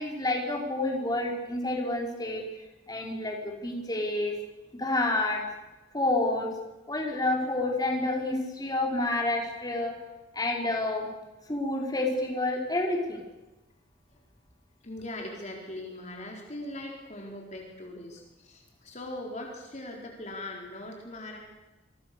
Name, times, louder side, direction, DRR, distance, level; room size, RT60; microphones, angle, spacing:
voice 1, 0.0-2.4 2.9-4.3 4.8-5.4 5.9-6.5 6.9-9.9 10.3-11.1 11.5-13.2, left 2 dB, 20° left, 0 dB, 5.0 m, -29 dB
voice 2, 14.8-21.4, left 1 dB, 40° left, 0 dB, 4.4 m, -40 dB
28.0 x 24.5 x 7.0 m, 1.1 s
head